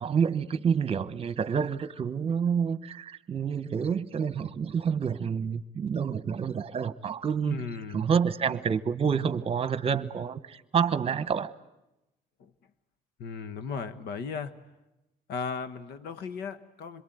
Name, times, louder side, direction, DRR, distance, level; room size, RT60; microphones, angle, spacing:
voice 1, 0.0-7.6 7.9-11.5, right 7 dB, 35° right, 1.2 m, -28 dB
voice 2, 7.5-8.1 12.4-12.5 13.2-14.6 15.3-17.0, left 5 dB, 75° left, 1.4 m, -36 dB
27.0 x 22.5 x 9.3 m
cardioid pair, 110°, 17 cm